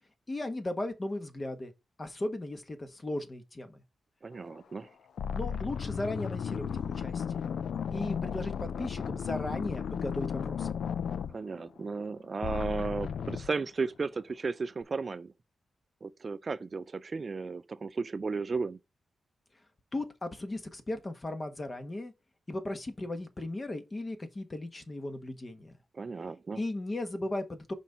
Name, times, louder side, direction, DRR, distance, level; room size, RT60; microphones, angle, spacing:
voice 1, 0.3-1.7 2.0-3.8 5.3-7.5 7.9-10.7 19.9-22.1 22.5-25.7 26.5-27.7, left 1 dB, 30° left, 1.3 m, -36 dB
voice 2, 4.2-4.9 11.3-15.3 16.0-18.8 25.9-26.6, right 4 dB, 40° right, 0.4 m, -34 dB
sound 1, 4.5-4.8 5.2-12.1 12.4-13.5, left 7 dB, 80° left, 0.4 m, -34 dB
6.0 x 4.1 x 4.6 m
cardioid pair, 90°, 0 cm